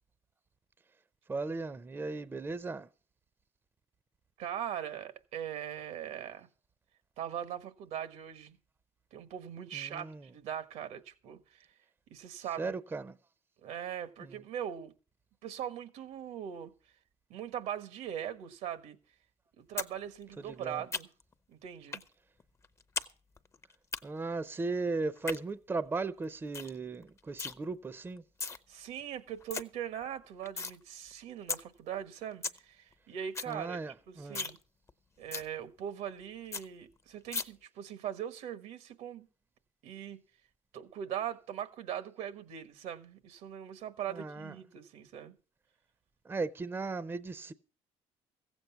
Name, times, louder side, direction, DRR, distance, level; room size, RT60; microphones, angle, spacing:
voice 1, 1.3-2.9 9.7-10.3 12.6-13.1 14.2-14.4 20.4-20.8 24.0-28.2 33.5-34.4 44.1-44.5 46.3-47.5, right 3 dB, 20° right, 0.6 m, -37 dB
voice 2, 4.4-6.5 7.2-8.6 9.1-11.7 12.1-12.7 13.6-14.9 15.4-16.7 17.3-19.0 19.6-21.1 21.5-22.0 28.7-33.8 34.1-34.6 35.2-39.3 39.8-40.2 40.7-45.3, right 10 dB, 85° right, 1.4 m, -40 dB
sound 1, 19.8-19.9 20.2-21.3 21.9-22.1 22.4-23.1 23.4-24.0 25.0-25.4 25.9-26.0 26.2-26.3 26.5-26.8 27.0-27.5 28.2-28.6 29.0-29.1 29.3-29.6 30.0-30.8 31.1-31.2 31.5-31.6 32.0-32.1 32.3-32.6 32.9-33.0 33.2-33.5 33.9-34.0 34.3-34.6 34.9-35.0 35.3-35.5 35.9-36.0 36.2-36.3 36.5-36.6 37.3-37.4, left 4 dB, 25° left, 0.7 m, -36 dB
15.0 x 8.0 x 5.8 m
cardioid pair, 110°, 12 cm